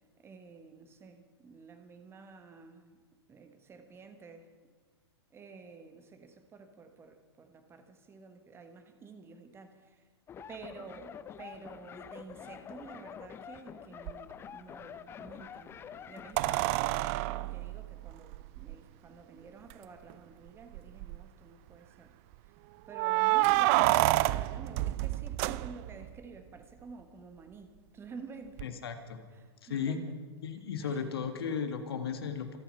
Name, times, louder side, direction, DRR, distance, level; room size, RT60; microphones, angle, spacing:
voice 1, 0.2-3.0 3.3-4.5 5.3-10.1 10.5-15.7 16.1-22.1 22.4-22.5 22.9-28.8 29.3-30.2 30.8-31.1, right 4 dB, 15° right, 7 dB, 1.4 m, -50 dB
sound 1, 10.3-16.6, left 8 dB, 15° left, 0.7 m, -47 dB
sound 2, 14.1-14.2 16.4-18.7 19.7-19.8 20.1-20.2 20.7-21.2 22.9-26.1 28.6-28.7, right 18 dB, 35° right, 0.4 m, -28 dB
voice 2, 28.6-29.2 29.6-30.0 30.4-32.6, left 6 dB, 60° left, 6 dB, 1.8 m, -35 dB
27.0 x 9.0 x 5.7 m, 1.4 s
figure-of-eight pair, 105°, 14 cm